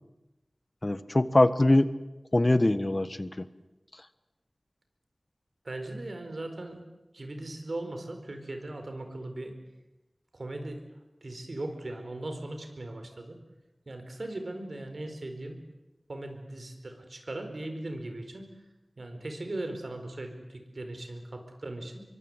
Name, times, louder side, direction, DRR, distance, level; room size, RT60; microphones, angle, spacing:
voice 1, 0.8-1.9 2.3-3.3, left 1 dB, 40° left, 14 dB, 1.4 m, -22 dB
voice 2, 5.6-6.8 7.1-9.5 10.3-10.8 11.2-13.4 13.9-15.6 16.1-18.5 19.0-21.9, right 2 dB, 70° right, 6 dB, 4.6 m, -38 dB
24.5 x 23.5 x 8.1 m, 1.0 s
wide cardioid pair, 45°, 0 cm